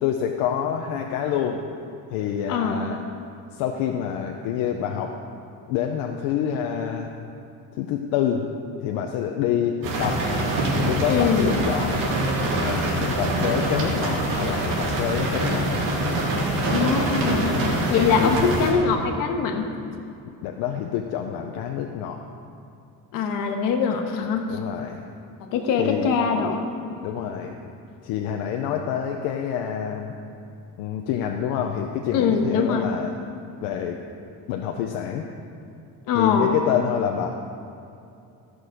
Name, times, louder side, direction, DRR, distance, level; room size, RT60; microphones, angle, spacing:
voice 1, 0.0-1.6 2.1-3.0 3.5-5.1 5.7-7.1 7.8-8.4 8.8-10.2 10.7-12.0 12.6-15.8 17.3-17.8 18.2-18.3 20.4-22.2 24.5-25.0 25.8-26.1 27.0-27.5 28.0-30.1 30.8-33.1 33.6-34.0 34.5-35.3 36.1-37.3, left 9 dB, 90° left, 3 dB, 0.7 m, -27 dB
voice 2, 2.5-2.8 11.1-11.7 16.7-17.5 17.9-19.7 23.1-24.5 25.5-26.7 32.1-32.9 36.1-36.6, left 6 dB, 75° left, 4 dB, 1.3 m, -22 dB
sound 1, 9.8-18.7, right 1 dB, 70° right, 2.4 m, -24 dB
13.5 x 6.3 x 5.0 m, 2.6 s
cardioid pair, 145°, 34 cm